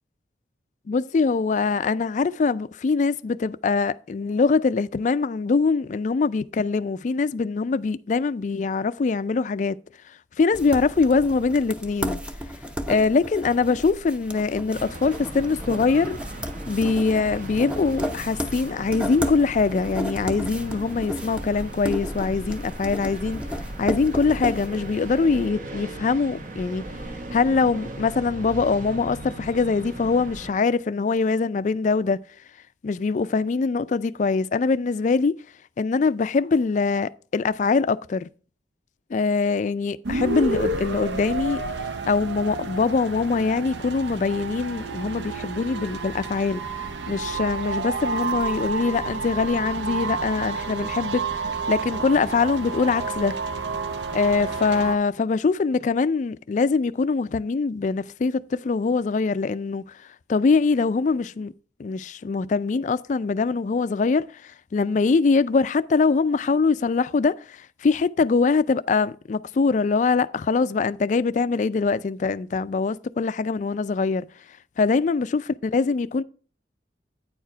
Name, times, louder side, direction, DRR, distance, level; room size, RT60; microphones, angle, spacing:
voice 1, 0.9-9.8 10.1-12.2 12.9-16.2 16.7-23.4 23.8-26.8 27.3-32.2 32.8-35.4 35.8-38.3 39.1-41.6 42.1-51.2 51.7-53.3 54.1-61.5 61.8-74.3 74.8-76.2, left 4 dB, 40° left, 0.3 m, -23 dB
sound 1, 10.5-25.3, equal, 5° right, 0.6 m, -33 dB
sound 2, 14.7-30.5, right 1 dB, 45° right, 0.9 m, -37 dB
sound 3, 40.0-55.0, right 4 dB, 75° right, 0.6 m, -30 dB
9.2 x 4.7 x 4.4 m
head